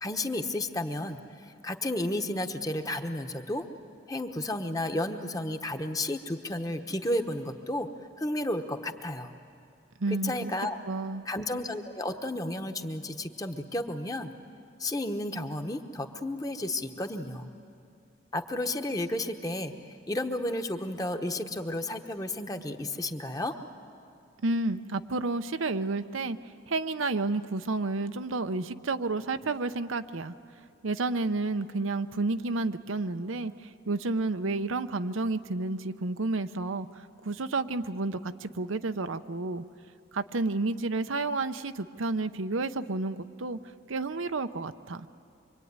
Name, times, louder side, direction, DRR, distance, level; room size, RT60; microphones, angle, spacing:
voice 1, 0.0-3.7 4.1-7.9 8.2-9.3 10.1-10.8 11.3-14.3 14.8-17.5 18.3-19.7 20.1-23.5, left 1 dB, 20° left, 6 dB, 1.1 m, -32 dB
voice 2, 10.0-10.5 10.9-11.2 24.4-26.4 26.7-30.3 30.8-39.6 40.1-43.6 43.9-45.1, right 3 dB, 80° right, 10 dB, 0.8 m, -31 dB
25.0 x 25.0 x 9.6 m, 2.5 s
head